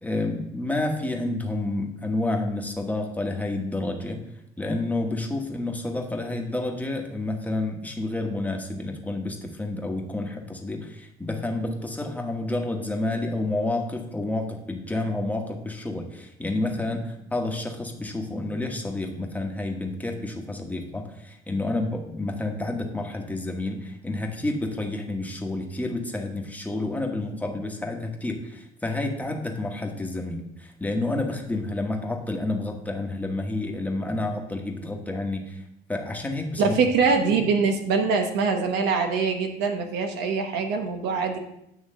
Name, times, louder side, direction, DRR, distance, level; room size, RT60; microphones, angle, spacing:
voice 1, 0.0-4.2 4.6-35.6 35.9-36.7, left 2 dB, 10° left, 2 dB, 1.2 m, -29 dB
voice 2, 36.6-41.4, right 5 dB, 85° right, 4 dB, 1.1 m, -23 dB
9.4 x 3.2 x 6.4 m, 0.81 s
cardioid pair, 110°, 17 cm